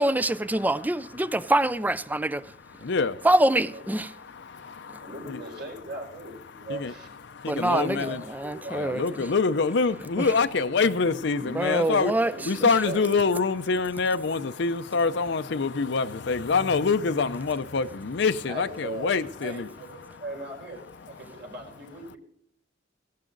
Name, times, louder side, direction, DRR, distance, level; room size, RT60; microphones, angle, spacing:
voice 1, 0.0-2.4 3.2-4.1 7.5-9.0 10.2-10.3 11.4-12.3 12.6-12.7, right 1 dB, 10° right, 0.4 m, -25 dB
voice 2, 2.8-3.3 4.1-5.4 6.7-6.9 7.3-8.2 8.7-12.1 12.5-19.7 20.0-20.1, left 4 dB, 65° left, 0.6 m, -26 dB
voice 3, 5.0-7.1 7.6-9.2 12.2-13.1 18.5-19.1 19.4-22.2, right 1 dB, 60° right, 4.5 m, -39 dB
17.0 x 12.0 x 3.9 m
head